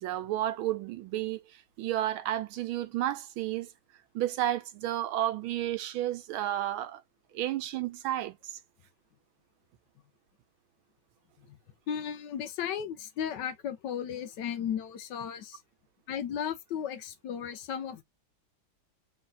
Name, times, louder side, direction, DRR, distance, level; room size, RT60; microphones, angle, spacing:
voice 1, 0.0-1.4 1.8-3.7 4.1-7.0 7.3-8.6, right 13 dB, 85° right, 1.5 m, -31 dB
voice 2, 11.9-15.6 16.1-18.0, left 8 dB, 70° left, 1.1 m, -35 dB
3.4 x 3.1 x 3.7 m
omnidirectional pair, 2.2 m